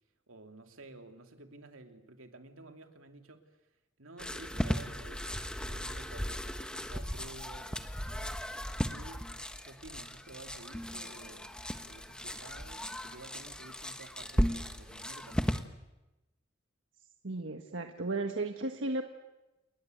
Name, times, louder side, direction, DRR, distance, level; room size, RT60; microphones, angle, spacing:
voice 1, 0.3-3.6 4.0-8.4 8.9-11.5 11.9-15.7, right 2 dB, 85° right, 5 dB, 2.9 m, -52 dB
sound 1, 4.2-15.6, equal, 5° left, 1.3 m, -36 dB
voice 2, 17.2-19.0, right 2 dB, 70° right, 5 dB, 1.5 m, -34 dB
29.0 x 21.5 x 8.0 m, 1.0 s
head